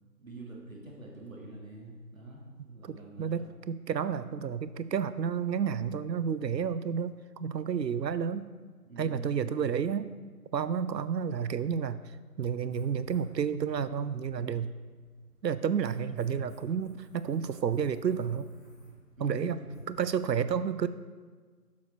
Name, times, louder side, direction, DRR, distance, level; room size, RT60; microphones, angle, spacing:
voice 1, 0.2-3.5 8.9-9.8 19.2-19.7, right 1 dB, 55° right, -2 dB, 1.7 m, -46 dB
voice 2, 2.8-8.5 9.0-10.1 10.5-14.7 15.4-18.5 19.2-19.6 19.9-20.9, right 7 dB, 85° right, 14 dB, 0.5 m, -31 dB
Writing, 12.7-20.2, right 2 dB, 35° left, 2.1 m, -55 dB
7.1 x 4.7 x 4.4 m, 1.5 s
figure-of-eight pair, 165°, 48 cm